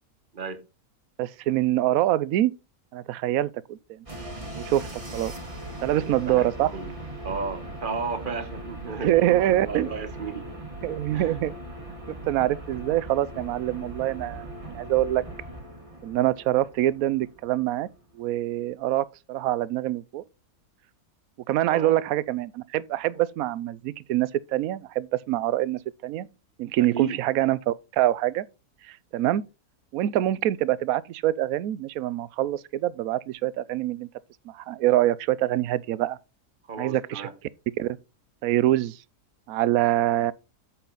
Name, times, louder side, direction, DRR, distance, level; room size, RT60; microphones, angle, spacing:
voice 1, 1.2-2.5 2.9-4.0 4.6-5.3 5.8-6.7 9.0-9.9 10.8-11.5 12.3-15.2 16.0-17.9 18.1-20.2 21.5-26.3 26.6-28.4 28.9-29.4 29.9-34.1 34.5-36.2 36.8-37.3 37.8-38.0 38.4-39.0 39.5-40.3, right 14 dB, 70° right, 1.0 m, -25 dB
sound 1, 4.1-18.0, right 1 dB, 20° right, 2.0 m, -39 dB
voice 2, 5.9-6.9 7.2-10.5 11.1-11.4 21.7-21.9 23.1-23.2 26.8-27.2 36.7-37.3, right 4 dB, 35° right, 1.1 m, -34 dB
8.4 x 7.9 x 3.9 m
omnidirectional pair, 1.6 m